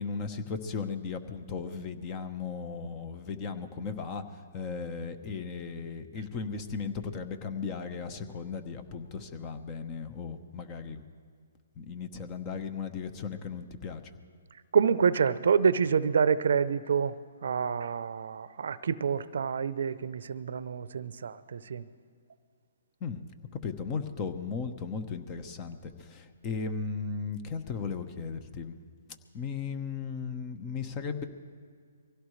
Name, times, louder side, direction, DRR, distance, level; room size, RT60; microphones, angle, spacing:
voice 1, 0.0-4.2 4.5-11.0 11.8-14.0 23.0-23.2 23.5-28.8 29.3-31.3, left 5 dB, 25° left, 9 dB, 1.2 m, -36 dB
voice 2, 14.7-17.1 17.4-21.8, right 6 dB, 65° right, 16 dB, 0.7 m, -27 dB
24.0 x 16.5 x 3.3 m, 2.2 s
hypercardioid pair, 140°, 0 cm